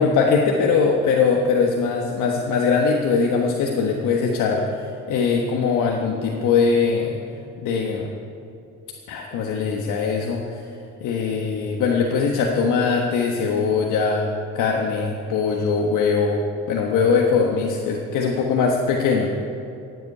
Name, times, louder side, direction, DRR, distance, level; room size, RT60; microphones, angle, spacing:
voice 1, 0.0-4.7 5.1-7.2 7.6-8.1 9.1-10.6 11.0-14.3 14.5-16.4 16.7-19.3, left 5 dB, 85° left, 1 dB, 1.4 m, -21 dB
15.0 x 8.2 x 9.6 m, 2.7 s
cardioid pair, 90°, 30 cm